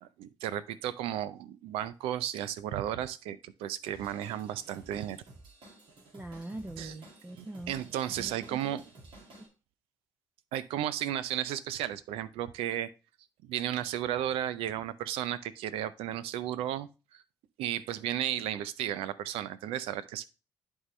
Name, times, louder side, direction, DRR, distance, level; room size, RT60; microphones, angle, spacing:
voice 1, 0.0-5.2 6.8-7.0 7.4-8.8 10.5-12.9 13.4-17.2 17.6-20.3, right 11 dB, 80° right, 0.5 m, -34 dB
Drum kit / Drum, 3.9-9.5, right 2 dB, 60° right, 2.2 m, -53 dB
voice 2, 6.1-7.7 8.2-8.6, right 1 dB, 15° right, 0.7 m, -42 dB
11.0 x 3.8 x 3.2 m
hypercardioid pair, 45°, 10 cm